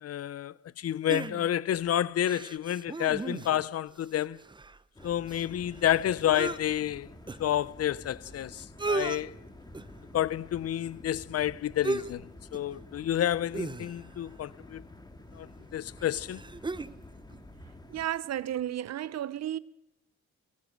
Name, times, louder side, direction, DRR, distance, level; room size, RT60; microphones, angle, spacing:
voice 1, 0.0-4.4 5.0-7.1 7.4-9.3 10.1-14.8 15.3-15.5 15.7-16.4, left 11 dB, 55° left, 0.6 m, -30 dB
sound 1, 1.1-1.8 2.2-3.7 4.0-4.1 4.4-6.6 7.3-7.4 8.3-8.4 8.6-9.2 9.7-10.0 11.8-12.2 12.5-12.7 13.5-14.2 15.3-15.4 16.0-17.0 17.3-17.4, right 3 dB, 15° right, 0.8 m, -35 dB
sound 2, 4.9-18.0, left 2 dB, 15° left, 2.5 m, -50 dB
voice 2, 17.9-19.6, right 11 dB, 60° right, 0.8 m, -33 dB
23.5 x 18.0 x 6.5 m
cardioid pair, 90°, 30 cm